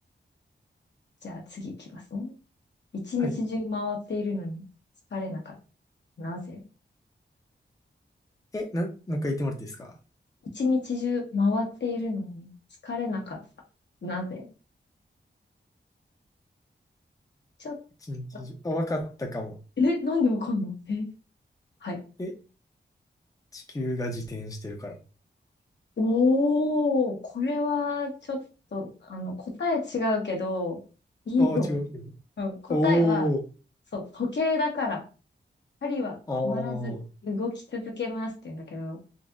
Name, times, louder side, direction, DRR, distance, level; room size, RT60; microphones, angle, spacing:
voice 1, 1.2-2.3 2.9-4.6 5.1-5.5 6.2-6.6 10.5-12.5 12.8-13.4 14.0-14.5 17.6-17.8 18.3-18.4 19.8-21.1 21.8-22.0 26.0-28.4 28.7-30.8 31.3-31.7 32.4-33.2 33.9-35.0 35.8-36.2 36.4-36.9 37.2-39.0, left 3 dB, 65° left, 1 dB, 1.0 m, -28 dB
voice 2, 8.5-9.9 18.1-19.6 22.2-22.3 23.5-25.0 31.4-31.9 32.7-33.4 36.3-37.1, left 1 dB, 20° left, 2 dB, 0.6 m, -29 dB
3.9 x 2.8 x 2.4 m, 0.34 s
wide cardioid pair, 100°, 19 cm